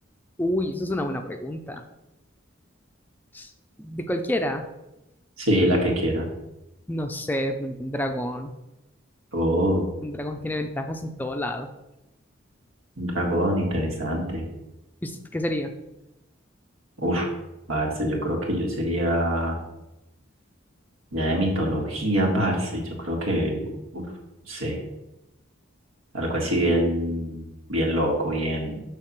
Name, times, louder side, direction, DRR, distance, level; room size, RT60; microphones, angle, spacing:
voice 1, 0.4-1.8 3.3-3.5 3.8-4.7 6.9-8.5 10.0-11.7 15.0-15.7, left 1 dB, 10° left, 5 dB, 0.4 m, -29 dB
voice 2, 5.4-6.3 9.3-9.9 13.0-14.4 17.0-17.3 17.7-19.6 21.1-24.0 24.5-24.8 26.1-28.8, equal, 90° right, 0 dB, 1.8 m, -25 dB
6.5 x 3.5 x 5.9 m, 0.93 s
head